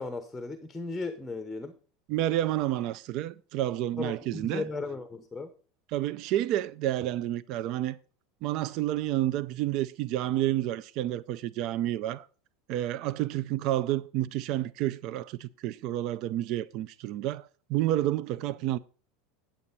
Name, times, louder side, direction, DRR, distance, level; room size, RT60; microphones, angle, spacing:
voice 1, 0.0-1.7 4.0-5.5, left 3 dB, 5° left, 0.8 m, -36 dB
voice 2, 2.1-4.7 5.9-8.0 8.4-12.3 12.7-18.8, right 13 dB, 50° right, 0.4 m, -30 dB
9.1 x 8.8 x 4.1 m
supercardioid pair, 145°, 0 cm